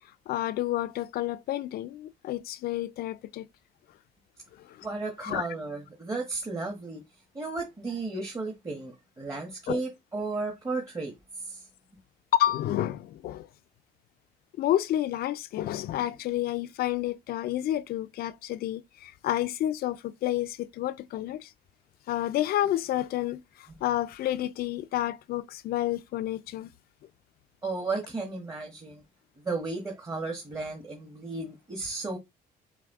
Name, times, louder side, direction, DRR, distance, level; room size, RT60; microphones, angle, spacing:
voice 1, 0.3-3.5 4.6-4.9 5.2-5.4 9.7-9.8 12.3-13.5 14.6-21.5 22.1-26.7, left 13 dB, 65° left, 0.5 m, -30 dB
voice 2, 4.8-7.0 7.3-11.7 27.6-29.0 29.4-32.2, right 3 dB, 20° right, 1.3 m, -34 dB
5.9 x 2.3 x 3.6 m
cardioid pair, 110°, 17 cm